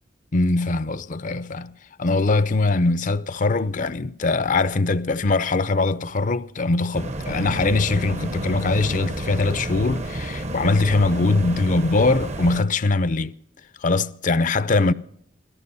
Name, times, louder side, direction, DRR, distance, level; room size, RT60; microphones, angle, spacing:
voice 1, 0.3-1.7 2.0-13.3 13.8-14.9, left 3 dB, 45° left, 0.6 m, -22 dB
sound 1, 6.9-12.6, right 1 dB, 40° right, 0.9 m, -31 dB
18.5 x 14.0 x 5.5 m
head